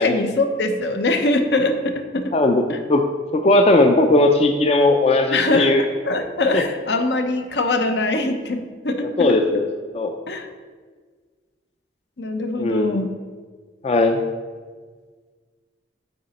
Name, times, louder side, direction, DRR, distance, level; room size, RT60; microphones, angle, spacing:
voice 1, 0.0-2.3 2.7-2.8 5.3-8.6 8.8-9.4 10.3-10.5 12.2-13.1, left 2 dB, 70° left, 6 dB, 0.7 m, -22 dB
voice 2, 2.3-2.6 2.9-3.0 3.3-5.8 6.5-6.6 9.2-9.6 9.9-10.1 12.6-13.0 13.8-14.2, left 2 dB, 35° left, 5 dB, 0.4 m, -17 dB
9.2 x 3.8 x 4.1 m, 1.5 s
head